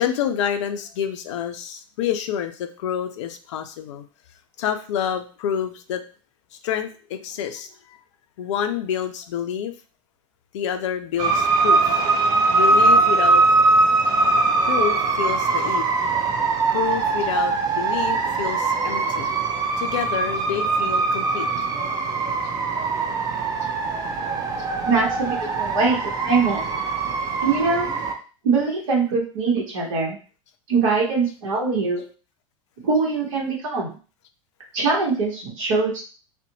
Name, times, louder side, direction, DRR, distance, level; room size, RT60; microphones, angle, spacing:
voice 1, 0.0-4.0 4.6-6.0 6.6-7.7 8.4-9.7 10.5-12.0 12.5-13.4 14.6-16.0 16.7-19.3 19.8-21.7 23.6-23.7 24.6-24.7, left 9 dB, 55° left, 7 dB, 0.4 m, -28 dB
sound 1, 11.2-28.1, right 3 dB, 20° right, 0.4 m, -21 dB
voice 2, 24.8-26.6 27.4-27.9 28.4-30.2 30.7-32.0 32.8-33.9 34.7-36.0, right 4 dB, 60° right, -2 dB, 0.9 m, -22 dB
2.5 x 2.1 x 2.7 m, 0.36 s
figure-of-eight pair, 80°, 18 cm